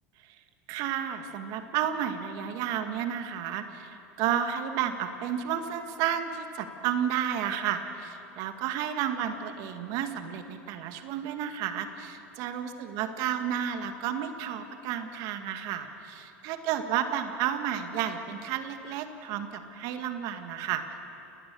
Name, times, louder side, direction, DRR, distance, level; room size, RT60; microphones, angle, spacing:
voice 1, 0.7-21.0, right 9 dB, 60° right, 7 dB, 1.9 m, -32 dB
29.5 x 19.5 x 7.0 m, 2.8 s
hypercardioid pair, 90°, 7 cm